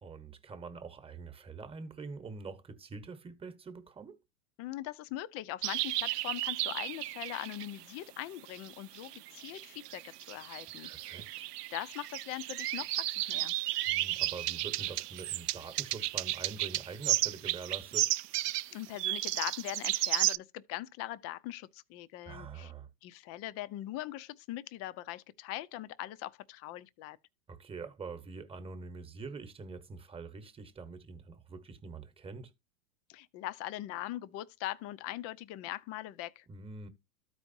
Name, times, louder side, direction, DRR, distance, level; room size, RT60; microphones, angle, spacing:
voice 1, 0.0-4.2 10.8-11.4 13.9-18.1 22.2-22.9 27.5-32.5 36.5-36.9, right 4 dB, 10° right, 1.2 m, -45 dB
voice 2, 4.6-10.9 11.7-13.5 18.7-22.7 23.0-27.2 33.1-36.5, left 15 dB, 30° left, 0.6 m, -41 dB
sound 1, 5.6-7.8 8.5-20.4, right 15 dB, 85° right, 0.5 m, -33 dB
13.5 x 4.8 x 2.6 m
hypercardioid pair, 125°, 46 cm